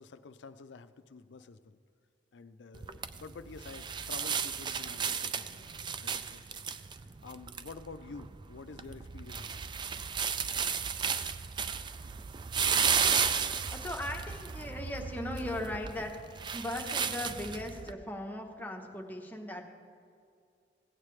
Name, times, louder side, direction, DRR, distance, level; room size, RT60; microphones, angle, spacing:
voice 1, 0.0-1.8 2.3-5.7 6.0-6.5 6.9-9.6, left 4 dB, 75° left, 10 dB, 0.4 m, -49 dB
sound 1, 2.7-17.9, right 6 dB, 25° right, 0.3 m, -34 dB
voice 2, 13.5-16.2 16.5-19.7, left 1 dB, 10° left, 1 dB, 0.9 m, -38 dB
16.0 x 8.9 x 3.2 m, 2.4 s
head